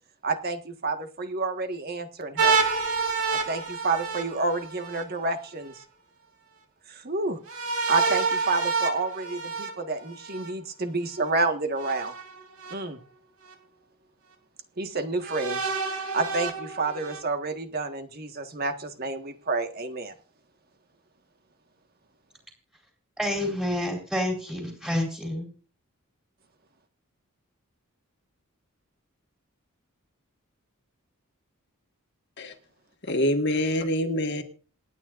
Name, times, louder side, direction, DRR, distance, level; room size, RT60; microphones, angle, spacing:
voice 1, 0.2-2.6 3.3-5.7 6.9-7.4 7.9-12.1 12.7-13.0 14.8-15.6 16.1-20.1, right 3 dB, 45° right, 6 dB, 1.6 m, -29 dB
sound 1, 2.4-5.0 7.5-10.5 11.8-12.7 13.5-13.6 15.2-17.2, right 4 dB, 80° right, 3.0 m, -28 dB
voice 2, 23.2-25.5, left 1 dB, ahead, 1 dB, 4.3 m, -28 dB
voice 3, 33.1-34.4, left 1 dB, 50° left, 5 dB, 1.7 m, -25 dB
27.0 x 9.6 x 2.6 m, 0.39 s
head